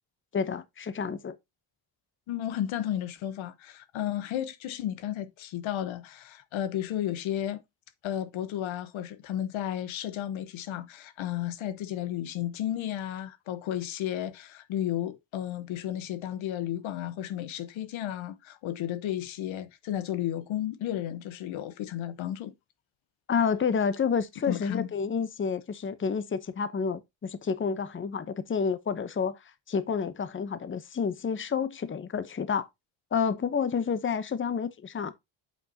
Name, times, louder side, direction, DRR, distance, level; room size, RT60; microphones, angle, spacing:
voice 1, 0.3-1.4 23.3-29.4 29.7-32.7 33.1-35.1, left 6 dB, 25° left, 0.8 m, -29 dB
voice 2, 2.3-7.6 8.0-22.5 24.5-24.9, left 11 dB, 80° left, 1.0 m, -33 dB
8.5 x 5.4 x 2.8 m
cardioid pair, 90°, 47 cm